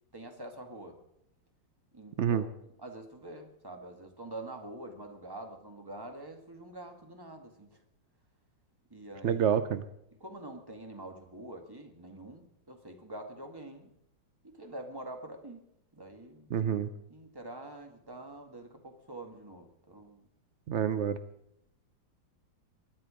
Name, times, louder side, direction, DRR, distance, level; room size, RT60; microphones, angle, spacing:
voice 1, 0.1-1.0 1.9-2.5 2.8-7.8 8.9-9.4 10.1-13.9 14.4-15.6 15.9-20.3, right 1 dB, 15° right, 4 dB, 1.6 m, -46 dB
voice 2, 9.2-9.8 16.5-16.9 20.7-21.2, right 8 dB, 80° right, 11 dB, 0.6 m, -27 dB
21.5 x 10.5 x 5.1 m, 0.77 s
omnidirectional pair, 2.0 m